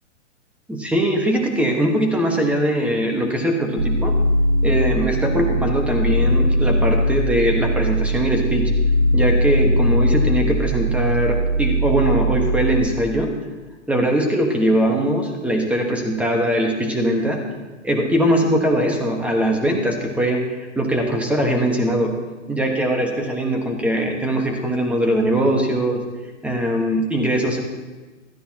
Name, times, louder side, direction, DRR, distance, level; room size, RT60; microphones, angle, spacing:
voice 1, 0.7-4.1 4.6-8.7 9.1-13.3 13.9-17.4 17.8-22.1 22.5-26.0 26.4-27.6, right 1 dB, 5° right, 2 dB, 1.4 m, -21 dB
sound 1, 3.8-12.9, equal, 65° right, 1.3 m, -20 dB
16.0 x 13.0 x 3.0 m, 1.2 s
hypercardioid pair, 145°, 38 cm